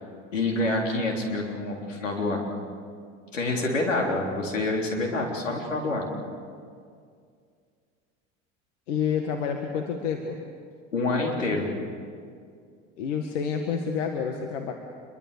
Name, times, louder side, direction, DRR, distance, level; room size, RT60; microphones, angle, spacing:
voice 1, 0.3-2.4 3.3-6.1 10.9-11.7, left 2 dB, 90° left, 0 dB, 3.7 m, -27 dB
voice 2, 8.9-10.4 13.0-14.7, left 6 dB, 75° left, 4 dB, 1.9 m, -28 dB
27.0 x 23.0 x 6.9 m, 2.2 s
hypercardioid pair, 75°, 37 cm